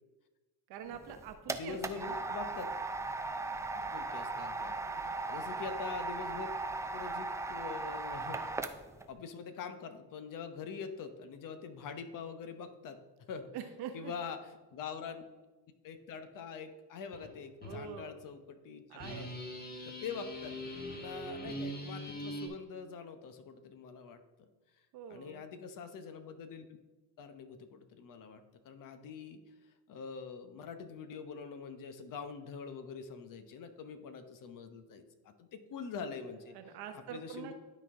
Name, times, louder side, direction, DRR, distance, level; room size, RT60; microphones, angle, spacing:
voice 1, 0.7-2.2 4.7-5.1 13.5-14.1 17.6-18.1 18.9-19.3 24.9-25.4 36.5-37.5, right 8 dB, 70° right, 7 dB, 1.0 m, -45 dB
sound 1, 0.9-9.1, right 3 dB, 10° right, 0.3 m, -38 dB
voice 2, 1.5-2.7 3.7-4.7 5.0-6.5 6.9-8.6 9.1-13.5 13.9-15.2 15.8-19.3 19.8-20.5 21.0-24.5 25.1-26.6 27.2-36.5 36.9-37.5, left 6 dB, 55° left, 9 dB, 0.9 m, -44 dB
sound 2, 17.1-17.3 17.6-17.8 19.0-22.5, equal, 25° left, 1.3 m, -42 dB
12.0 x 4.1 x 3.7 m, 1.2 s
cardioid pair, 105°, 39 cm